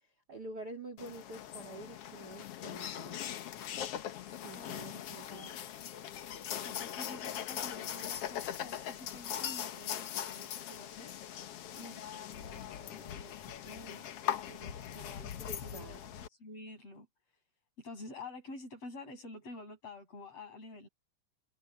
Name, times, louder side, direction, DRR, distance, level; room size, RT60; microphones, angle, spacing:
voice 1, 0.3-3.2 4.3-5.6 15.4-16.0, right 2 dB, 40° right, 1.7 m, -47 dB
sound 1, 1.0-16.3, left 10 dB, 65° left, 1.6 m, -41 dB
voice 2, 4.5-5.0 5.3-5.6 6.6-11.1 11.7-14.1 14.4-15.3 15.6-17.1 17.8-20.9, left 2 dB, 45° left, 7.8 m, -49 dB
omnidirectional pair, 3.9 m